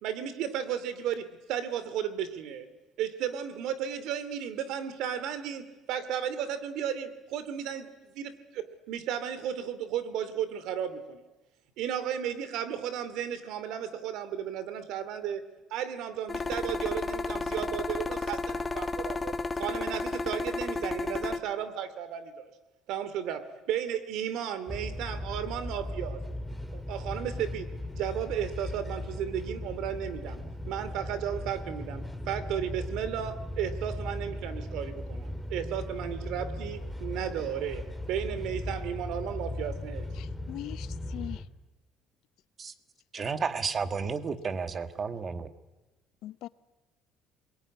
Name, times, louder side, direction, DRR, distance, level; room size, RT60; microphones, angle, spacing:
voice 1, 0.0-2.7 3.0-11.2 11.8-15.4 15.7-22.5 22.9-26.2 26.7-27.7 27.9-40.1, right 9 dB, 75° right, 13 dB, 2.6 m, -34 dB
sound 1, 16.3-21.4, left 3 dB, 20° left, 1.6 m, -32 dB
sound 2, 24.7-41.4, left 1 dB, ahead, 2.0 m, -37 dB
voice 2, 40.1-41.5 46.2-46.5, left 14 dB, 70° left, 15 dB, 0.8 m, -41 dB
voice 3, 43.1-45.5, right 5 dB, 30° right, 9 dB, 1.6 m, -32 dB
28.0 x 21.5 x 9.6 m, 1.1 s
cardioid pair, 135°, 0 cm